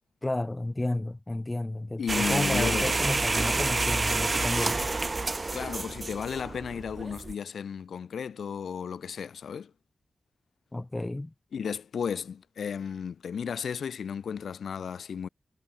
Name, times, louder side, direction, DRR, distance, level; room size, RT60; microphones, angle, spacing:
voice 1, 0.2-4.8 10.7-11.3, left 2 dB, 25° left, 0.4 m, -32 dB
voice 2, 2.0-3.0 5.5-9.7 11.5-15.3, left 7 dB, 85° left, 0.7 m, -34 dB
sound 1, 2.1-7.3, right 3 dB, 40° right, 0.6 m, -28 dB
cardioid pair, 45°, 0 cm